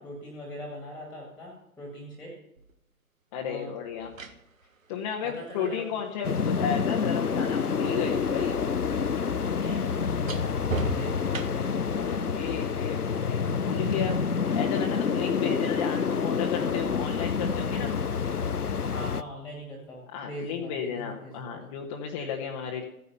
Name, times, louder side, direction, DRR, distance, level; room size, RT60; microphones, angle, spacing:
voice 1, 0.0-2.3 3.4-3.7 5.2-5.9 9.2-11.4 15.4-15.7 18.9-21.6, left 1 dB, 5° left, -1 dB, 2.1 m, -41 dB
sound 1, 2.6-2.7 3.8-7.8 8.1-11.9 13.9-14.1, right 4 dB, 60° right, 1.6 m, -39 dB
voice 2, 3.3-4.1 4.9-8.6 11.9-14.2 14.5-17.9 20.1-22.9, left 7 dB, 20° left, -2 dB, 1.1 m, -33 dB
sound 2, 6.2-19.2, left 6 dB, 85° left, 0.8 m, -28 dB
15.5 x 10.0 x 5.5 m, 0.83 s
figure-of-eight pair, 130°, 45 cm